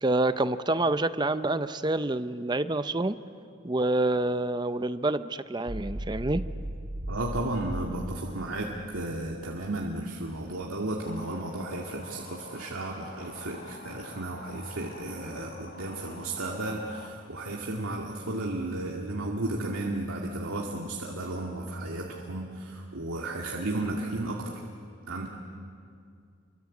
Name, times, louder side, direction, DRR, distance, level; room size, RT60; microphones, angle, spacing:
voice 1, 0.0-3.2 3.6-6.4, right 2 dB, 20° right, 12 dB, 0.6 m, -27 dB
sound 1, 5.7-9.9, right 1 dB, 65° right, 2.5 m, -37 dB
voice 2, 7.1-24.6 25.1-25.3, right 2 dB, 90° right, -1 dB, 2.3 m, -34 dB
sound 2, 11.0-17.1, left 3 dB, 45° left, 2.1 m, -47 dB
29.0 x 24.0 x 8.4 m, 2.3 s
head